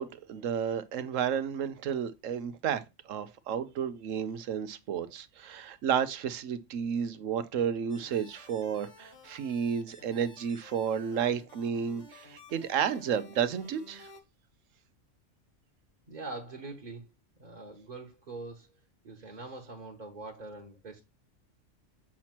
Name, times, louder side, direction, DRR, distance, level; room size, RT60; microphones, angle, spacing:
voice 1, 0.0-2.8 3.1-14.1, right 8 dB, 80° right, 1.1 m, -32 dB
sound 1, 7.9-14.2, left 2 dB, 70° left, 2.3 m, -54 dB
voice 2, 16.1-17.1 17.4-18.7 19.0-21.0, right 3 dB, 35° right, 1.3 m, -43 dB
7.4 x 2.9 x 5.9 m
omnidirectional pair, 1.3 m